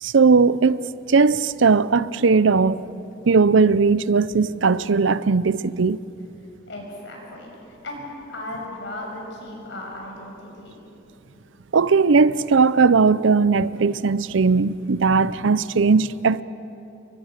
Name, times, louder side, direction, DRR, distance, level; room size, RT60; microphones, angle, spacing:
voice 1, 0.0-2.9 3.3-6.0 11.7-16.4, right 4 dB, 70° right, 0.6 m, -18 dB
voice 2, 6.6-8.0 8.3-10.7, left 1 dB, 65° left, 7.3 m, -36 dB
29.5 x 24.0 x 6.6 m
head